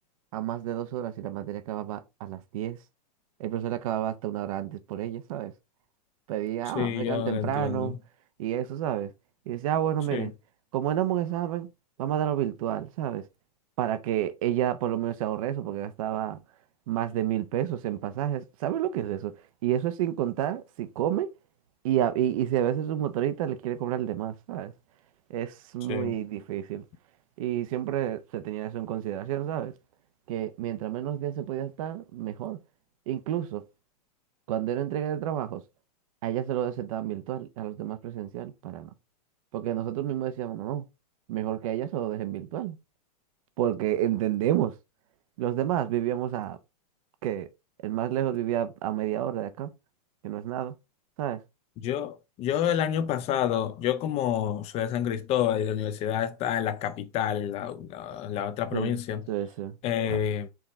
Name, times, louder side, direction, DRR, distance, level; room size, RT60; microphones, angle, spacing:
voice 1, 0.3-2.8 3.4-5.5 6.3-7.9 8.4-9.1 9.5-10.3 10.7-11.7 12.0-13.2 13.8-16.4 16.9-19.3 19.6-21.3 21.8-24.7 25.3-26.8 27.4-29.7 30.3-32.6 33.1-33.6 34.5-35.6 36.2-38.9 39.5-40.8 41.3-42.8 43.6-44.7 45.4-46.6 47.2-47.5 47.8-49.7 50.2-50.7 51.2-51.4 58.7-59.0 59.3-59.8 60.1-60.2, right 11 dB, 55° right, 0.7 m, -30 dB
voice 2, 6.7-8.0 10.1-10.3 25.9-26.2 51.8-59.2 59.8-60.5, left 10 dB, 30° left, 0.6 m, -29 dB
4.7 x 2.9 x 3.4 m
hypercardioid pair, 125°, 21 cm